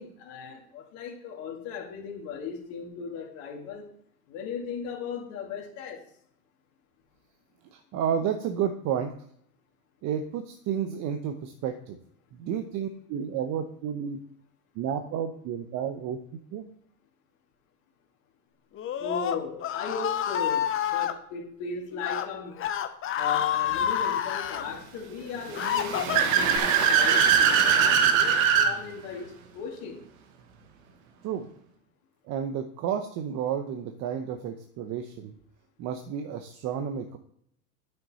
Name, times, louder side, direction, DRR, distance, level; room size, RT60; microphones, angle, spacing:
voice 1, 0.0-3.9 4.3-6.0 19.0-22.6 23.2-30.0, left 5 dB, 55° left, -2 dB, 2.3 m, -37 dB
voice 2, 7.7-9.1 10.0-12.0 12.3-14.2 14.7-16.2 16.5-16.7 31.2-31.5 32.3-35.3 35.8-37.2, right 8 dB, 35° right, 6 dB, 1.0 m, -31 dB
Screaming, 18.7-21.1 21.9-22.2 22.6-24.6 25.2-26.6, left 10 dB, 30° left, 1.0 m, -28 dB
Car / Accelerating revving vroom, 25.5-28.7, right 7 dB, 60° right, 1.8 m, -21 dB
9.2 x 6.8 x 4.2 m, 0.67 s
hypercardioid pair, 100°, 46 cm